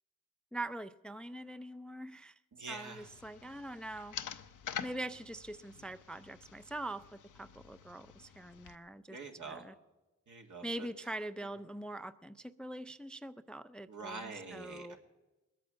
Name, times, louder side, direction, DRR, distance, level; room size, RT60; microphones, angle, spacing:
voice 1, 0.5-2.4 2.7-4.2 4.8-9.2 9.5-9.7 10.6-15.0, right 1 dB, 5° left, 13 dB, 0.4 m, -43 dB
voice 2, 2.5-3.1 9.1-9.6 10.3-10.9 13.9-15.0, right 4 dB, 70° right, 2 dB, 1.9 m, -45 dB
sound 1, 3.0-8.8, left 9 dB, 80° left, 0.7 m, -47 dB
19.5 x 8.7 x 7.5 m, 1.1 s
cardioid pair, 50°, 31 cm